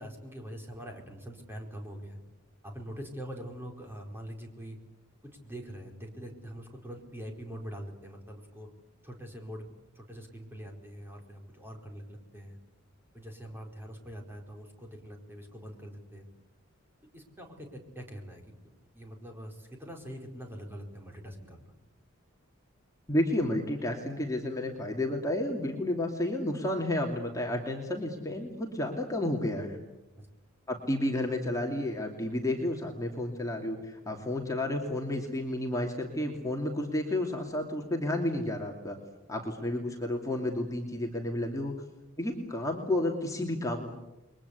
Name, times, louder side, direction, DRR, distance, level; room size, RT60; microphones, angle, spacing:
voice 1, 0.0-2.2 2.6-4.8 5.2-8.7 9.0-9.7 9.9-12.6 13.1-16.3 17.1-21.7 30.2-30.4, equal, 10° right, 2 dB, 4.7 m, -44 dB
voice 2, 23.1-29.8 30.7-39.0 39.3-41.7 42.2-44.0, left 1 dB, 15° left, 0 dB, 2.8 m, -31 dB
29.5 x 23.0 x 8.5 m, 1.0 s
head